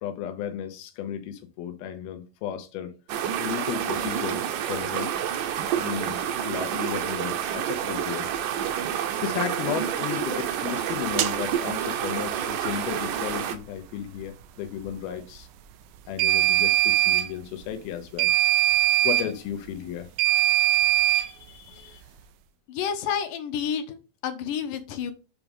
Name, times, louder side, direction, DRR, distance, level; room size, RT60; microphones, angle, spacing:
voice 1, 0.0-2.9 3.4-5.1 5.8-8.3 9.2-15.5 16.1-18.3 19.0-20.1 21.1-22.0, left 10 dB, 90° left, 2.8 m, -34 dB
sound 1, 3.1-13.6, right 9 dB, 75° right, 2.2 m, -29 dB
sound 2, 11.2-11.3 16.2-17.3 18.2-19.3 20.2-21.3, right 16 dB, 90° right, 1.8 m, -21 dB
voice 2, 22.7-25.1, left 8 dB, 70° left, 2.3 m, -30 dB
8.3 x 3.6 x 5.3 m
omnidirectional pair, 4.2 m